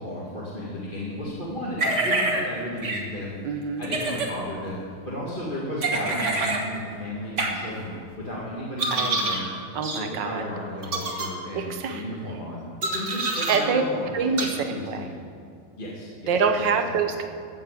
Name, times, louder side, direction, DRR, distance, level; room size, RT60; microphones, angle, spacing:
voice 1, 0.0-9.5 10.0-14.1 14.4-15.2 15.8-17.0, left 1 dB, 25° left, -7 dB, 1.9 m, -34 dB
sound 1, 1.8-2.4 2.8-3.0 3.8-4.3 5.8-6.6 7.4-7.5 8.8-9.4 9.8-10.0 10.8-11.3 12.8-13.6 14.4-14.5, right 2 dB, 40° right, 1.6 m, -26 dB
voice 2, 3.4-3.8 8.9-10.4 11.5-12.0 13.5-13.8 14.1-15.1 16.3-17.3, right 5 dB, 65° right, 6 dB, 1.5 m, -26 dB
14.0 x 7.4 x 8.2 m, 2.4 s
omnidirectional pair, 2.3 m